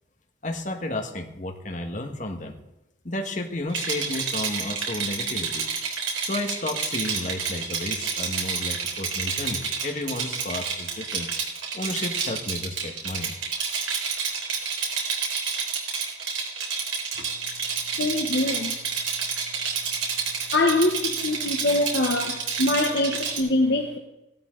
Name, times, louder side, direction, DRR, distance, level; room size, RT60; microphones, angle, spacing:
voice 1, 0.4-2.6 3.0-5.7 6.2-11.3 11.7-13.3, left 1 dB, 40° left, 4 dB, 1.6 m, -32 dB
Rattle, 3.7-23.4, right 5 dB, 90° right, 3.9 m, -29 dB
voice 2, 18.0-18.7 20.5-24.0, left 2 dB, 60° left, 3 dB, 1.1 m, -24 dB
16.0 x 13.0 x 3.9 m, 0.89 s
head